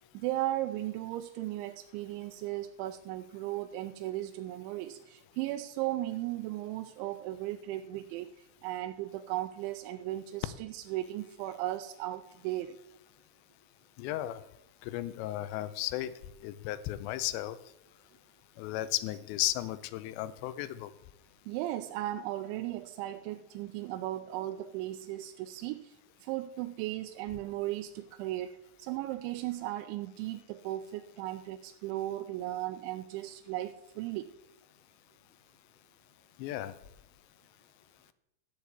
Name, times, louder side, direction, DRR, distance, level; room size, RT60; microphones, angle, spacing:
voice 1, 0.1-12.8 21.5-26.0 26.2-34.3, right 15 dB, 90° right, 7 dB, 3.0 m, -36 dB
voice 2, 14.0-14.4 14.8-16.1 16.4-17.6 18.6-20.9 36.4-36.8, left 15 dB, 80° left, 14 dB, 2.8 m, -34 dB
13.5 x 5.0 x 8.2 m, 0.83 s
omnidirectional pair, 5.3 m